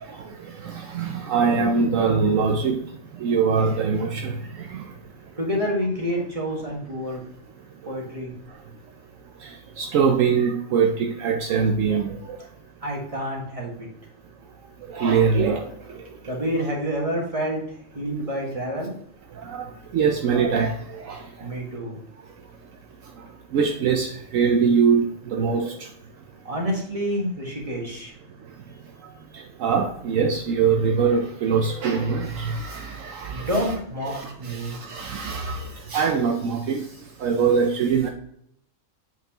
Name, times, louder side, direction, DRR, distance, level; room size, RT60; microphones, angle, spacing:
voice 1, 0.6-2.9 3.2-4.8 9.4-9.5 9.8-12.4 14.9-15.6 15.9-16.0 19.4-19.7 19.9-21.2 23.5-25.7 29.3-33.8 34.1-36.9 37.2-38.1, right 6 dB, 70° right, 1.0 m, -23 dB
voice 2, 5.4-7.2 7.8-8.3 12.8-13.9 16.2-18.9 21.4-22.0 26.4-28.1 33.3-34.8, equal, 25° right, 1.6 m, -28 dB
8.0 x 4.5 x 2.9 m
omnidirectional pair, 1.4 m